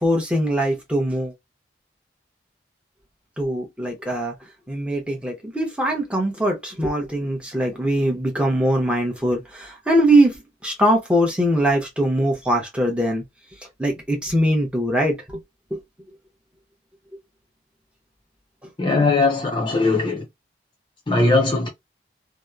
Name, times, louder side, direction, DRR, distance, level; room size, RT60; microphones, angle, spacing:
voice 1, 0.0-1.3 3.4-4.3 4.7-10.4 10.6-13.2 13.8-15.2 15.7-15.8, right 1 dB, 5° right, 0.7 m, -21 dB
voice 2, 18.8-20.2 21.1-21.7, left 3 dB, 25° left, 0.5 m, -19 dB
2.8 x 2.0 x 2.2 m
head